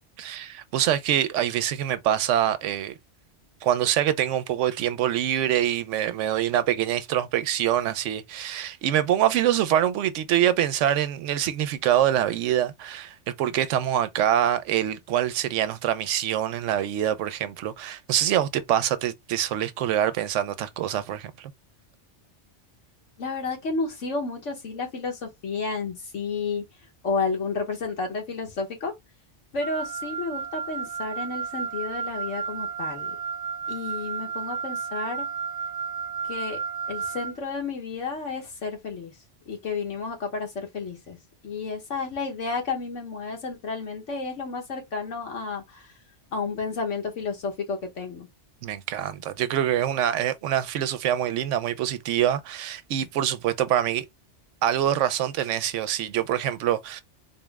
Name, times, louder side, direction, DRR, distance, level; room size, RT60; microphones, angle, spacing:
voice 1, 0.2-2.9 3.6-21.5 48.6-54.0 54.6-57.0, right 11 dB, 90° right, 0.9 m, -25 dB
voice 2, 23.2-26.6 27.0-28.9 29.5-33.1 33.7-35.2 36.2-36.6 36.9-39.1 39.5-41.2 41.4-45.9 46.3-48.3, left 4 dB, 85° left, 1.6 m, -31 dB
Wind instrument woodwind instrument, 29.6-37.4, right 6 dB, 55° right, 0.7 m, -32 dB
4.1 x 2.1 x 3.4 m
omnidirectional pair, 1.2 m